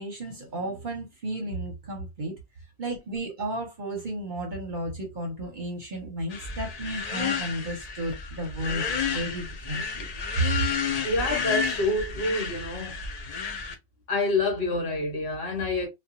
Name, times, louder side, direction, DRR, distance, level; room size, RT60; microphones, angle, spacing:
voice 1, 0.0-2.4 2.8-10.1 10.4-10.5, right 1 dB, 45° right, 0.8 m, -33 dB
sound 1, 6.3-13.7, left 5 dB, 70° left, 0.3 m, -31 dB
voice 2, 11.0-13.0 14.1-15.9, left 2 dB, 55° left, 1.4 m, -27 dB
2.7 x 2.2 x 2.4 m
omnidirectional pair, 1.3 m